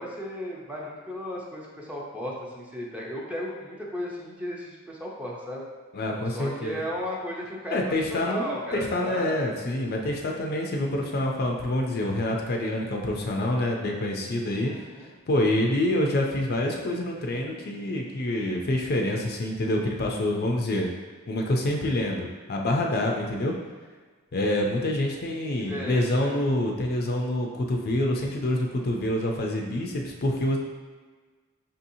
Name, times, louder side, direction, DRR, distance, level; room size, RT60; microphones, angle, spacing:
voice 1, 0.0-5.7 6.3-9.5 14.6-15.1 25.6-26.4, equal, 5° right, -4 dB, 0.5 m, -35 dB
voice 2, 5.9-6.8 7.7-14.7 15.3-20.9 21.3-23.5 24.3-30.6, left 1 dB, 45° left, 0 dB, 0.5 m, -26 dB
5.4 x 2.7 x 2.7 m, 1.4 s
head